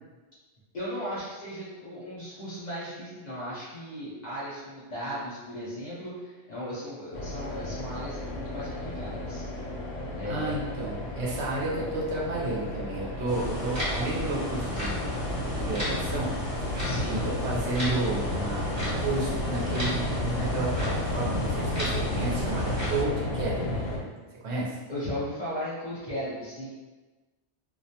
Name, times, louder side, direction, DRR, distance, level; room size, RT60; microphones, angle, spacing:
voice 1, 0.7-9.7 10.1-10.8 11.7-11.9 16.8-17.3 24.9-26.7, equal, 45° left, -8 dB, 0.7 m, -36 dB
sound 1, 7.1-24.0, left 1 dB, 90° left, 0.9 m, -33 dB
voice 2, 10.2-15.0 15.6-16.4 16.6-23.8 24.4-24.8, right 2 dB, 70° right, -4 dB, 0.8 m, -32 dB
sound 2, 13.3-23.0, equal, 40° right, 1.0 m, -34 dB
2.4 x 2.1 x 2.7 m, 1.2 s
omnidirectional pair, 1.2 m